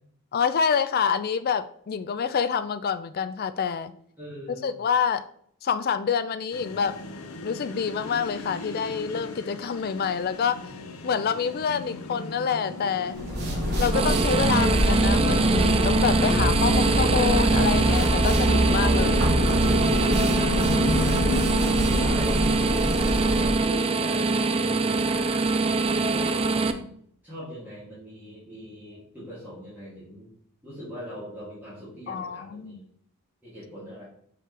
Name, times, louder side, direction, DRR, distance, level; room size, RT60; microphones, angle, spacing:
voice 1, 0.3-3.9 4.6-5.2 5.6-7.0 7.4-10.6 11.0-13.2 13.8-19.3 32.1-32.8, left 6 dB, 45° left, 11 dB, 0.3 m, -27 dB
voice 2, 4.2-4.8 20.1-21.4 21.7-24.3 24.6-25.6 26.1-26.9 27.2-30.3 30.6-32.8 33.4-34.0, equal, 10° right, -10 dB, 2.5 m, -41 dB
sound 1, 6.5-22.2, left 2 dB, 75° left, 0.7 m, -34 dB
sound 2, 13.1-23.7, equal, 50° right, 1.3 m, -25 dB
sound 3, 13.9-26.7, right 3 dB, 25° right, 0.4 m, -24 dB
5.8 x 5.0 x 3.3 m, 0.63 s
head